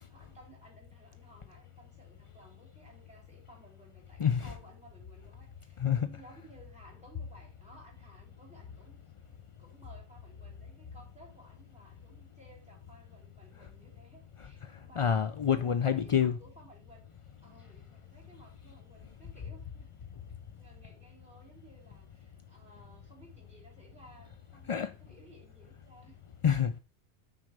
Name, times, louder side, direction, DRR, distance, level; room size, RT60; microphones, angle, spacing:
voice 1, 0.1-9.0 9.3-15.1 15.5-17.2 17.4-19.9 20.5-26.2, right 1 dB, 5° right, 3.4 m, -57 dB
voice 2, 4.2-4.5 5.8-6.1 14.4-14.5 15.0-16.4 24.7-24.9 26.4-26.8, left 8 dB, 60° left, 0.3 m, -27 dB
6.2 x 4.8 x 6.5 m
omnidirectional pair, 1.1 m